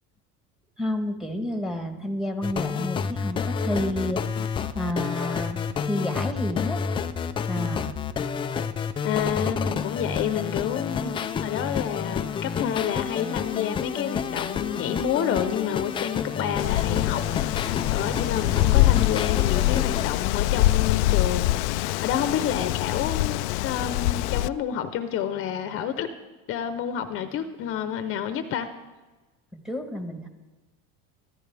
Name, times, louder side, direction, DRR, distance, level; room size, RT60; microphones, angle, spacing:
voice 1, 0.8-6.8 7.5-7.9 29.6-30.3, left 1 dB, ahead, 5 dB, 1.3 m, -30 dB
sound 1, 2.4-20.1, left 6 dB, 15° left, 0.4 m, -29 dB
voice 2, 9.0-26.1 26.5-28.7, left 9 dB, 40° left, 9 dB, 0.9 m, -29 dB
Wind, 16.6-24.5, left 17 dB, 90° left, 0.5 m, -24 dB
21.5 x 15.0 x 3.5 m, 1.2 s
cardioid pair, 155°, 33 cm